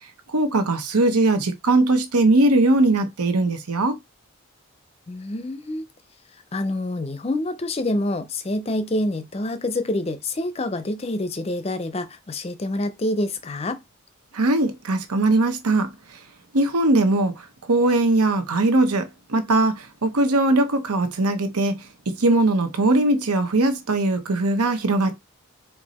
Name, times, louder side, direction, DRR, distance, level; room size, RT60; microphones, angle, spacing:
voice 1, 0.3-4.0 14.3-15.9 16.5-17.3 17.7-25.2, right 2 dB, 90° right, 0.9 m, -20 dB
voice 2, 5.1-5.8 6.5-13.8, left 1 dB, 25° left, 0.5 m, -27 dB
4.6 x 2.6 x 4.1 m
head